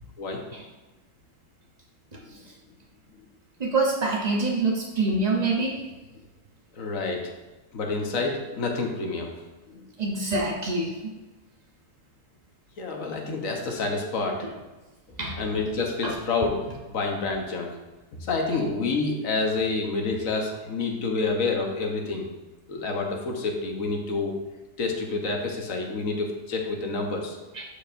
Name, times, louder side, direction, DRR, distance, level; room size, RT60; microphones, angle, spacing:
voice 1, 2.1-2.5 3.6-5.8 10.0-11.0 14.4-14.5 15.2-15.4 16.0-16.1 27.5-27.6, right 3 dB, 60° right, -1 dB, 0.4 m, -26 dB
voice 2, 6.7-7.3 7.7-9.3 9.7-9.9 12.8-14.4 15.4-16.5 16.9-17.8 18.3-22.3 22.7-24.3 24.8-27.4, left 3 dB, 55° left, 1 dB, 1.3 m, -28 dB
12.0 x 5.2 x 2.6 m, 1.1 s
omnidirectional pair, 1.9 m